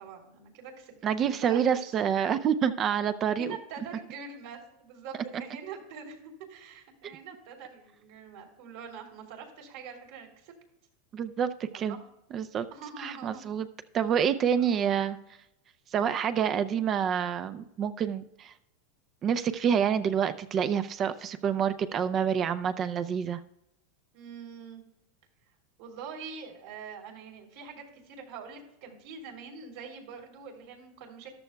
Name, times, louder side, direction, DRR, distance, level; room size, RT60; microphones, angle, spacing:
voice 1, 0.0-1.9 3.4-10.5 11.7-12.0 12.7-13.4 14.6-14.9 24.1-24.8 25.8-31.3, right 5 dB, 65° right, 2 dB, 3.1 m, -44 dB
voice 2, 1.0-3.6 11.1-12.0 12.3-12.7 13.0-13.7 13.9-15.2 15.9-18.5 19.2-23.4, right 8 dB, 30° right, 12 dB, 0.5 m, -27 dB
14.0 x 11.5 x 2.3 m, 0.86 s
supercardioid pair, 130°, 0 cm